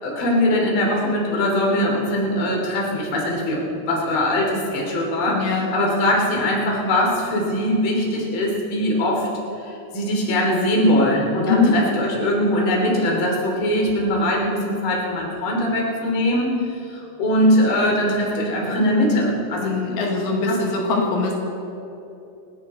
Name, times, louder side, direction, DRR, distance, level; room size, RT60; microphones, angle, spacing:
voice 1, 0.0-9.3 9.6-16.6 16.9-20.0 20.4-20.6, left 1 dB, 35° left, -2 dB, 2.9 m, -21 dB
voice 2, 5.3-5.7 11.5-11.8 19.6-21.3, left 5 dB, 80° left, -1 dB, 4.3 m, -22 dB
28.5 x 10.5 x 4.2 m, 2.9 s
omnidirectional pair, 5.5 m